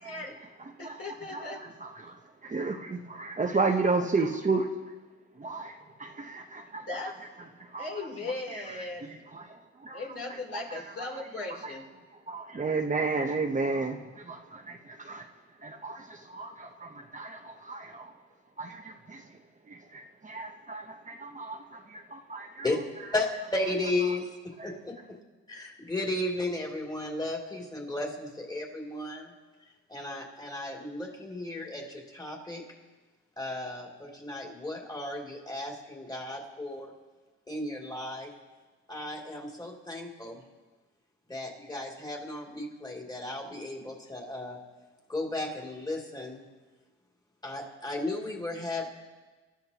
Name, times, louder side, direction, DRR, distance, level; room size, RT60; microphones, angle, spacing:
voice 1, 0.8-1.6 6.8-7.2 7.8-9.2 9.9-11.8, left 2 dB, 50° left, -2 dB, 3.5 m, -38 dB
voice 2, 1.3-2.1 2.4-4.7 5.4-6.8 7.7-7.9 8.5-8.6 9.3-10.0 10.7-10.8 11.6-11.7 12.3-15.3 15.6-18.1 18.6-19.2 19.7-22.6 24.6-24.7, right 3 dB, 25° right, 2 dB, 1.0 m, -33 dB
voice 3, 23.5-24.3 24.6-24.9 25.5-29.3 29.9-32.6 33.4-36.9 37.5-38.3 38.9-40.4 41.3-44.6 45.1-46.4 47.4-48.9, left 2 dB, 15° left, -2 dB, 3.0 m, -34 dB
26.5 x 12.5 x 3.0 m, 1.3 s
cardioid pair, 90°, 30 cm